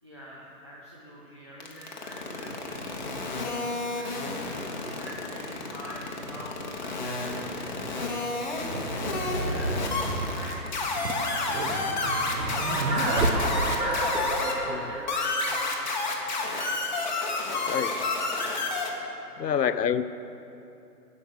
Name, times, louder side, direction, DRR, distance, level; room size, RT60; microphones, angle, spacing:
voice 1, 0.0-8.1 8.8-9.7 10.3-13.8 14.2-16.9 19.2-19.7, equal, 20° right, -8 dB, 0.6 m, -45 dB
sound 1, 1.6-14.5 15.1-18.9, left 3 dB, 30° left, 1.1 m, -30 dB
sound 2, 7.7-14.1, right 2 dB, 60° right, 1.4 m, -31 dB
sound 3, 12.2-16.4, right 1 dB, 85° right, 3.0 m, -32 dB
voice 2, 17.7-18.2 19.4-20.0, left 8 dB, 85° left, 13 dB, 0.7 m, -27 dB
16.0 x 5.4 x 7.0 m, 2.8 s
hypercardioid pair, 165°, 47 cm